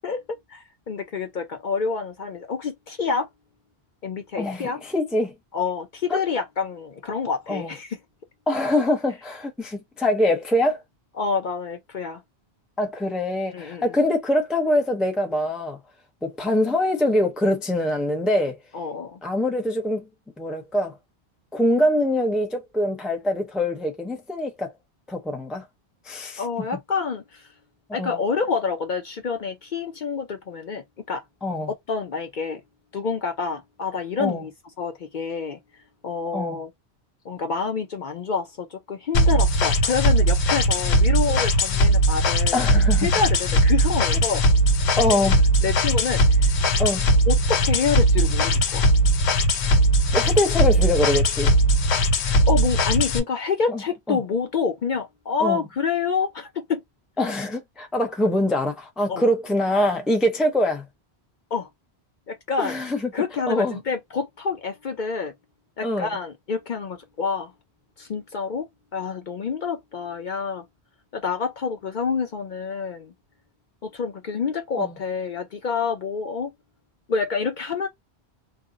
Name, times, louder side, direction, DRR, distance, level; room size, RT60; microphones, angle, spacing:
voice 1, 0.0-3.3 4.0-4.8 5.5-8.0 11.2-12.2 13.5-13.9 18.7-19.2 26.4-27.5 27.9-31.2 31.9-32.6 32.9-34.5 34.8-35.6 36.0-36.7 37.2-42.7 43.0-44.4 44.9-45.0 45.6-46.8 47.3-48.9 52.5-56.8 59.1-59.3 61.5-61.7 62.3-62.8 63.1-65.3 65.8-67.5 68.0-70.6 71.1-73.1 73.8-76.5 77.1-77.9, left 5 dB, 55° left, 0.6 m, -27 dB
voice 2, 4.3-5.3 6.1-6.2 7.5-7.7 8.5-10.8 12.8-15.8 16.2-18.6 19.2-20.1 20.4-21.0 21.5-24.7 25.1-25.7 26.1-26.4 28.0-28.2 31.4-31.7 34.2-34.4 36.3-36.6 42.5-43.1 45.0-45.4 46.8-47.1 50.1-51.5 53.7-53.8 54.1-54.2 55.4-55.6 57.2-60.8 62.6-63.1 63.5-63.8 65.8-66.1 74.8-74.9, left 1 dB, ahead, 0.4 m, -24 dB
sound 1, 39.1-53.2, equal, 85° left, 0.9 m, -19 dB
2.5 x 2.0 x 3.7 m
omnidirectional pair, 1.1 m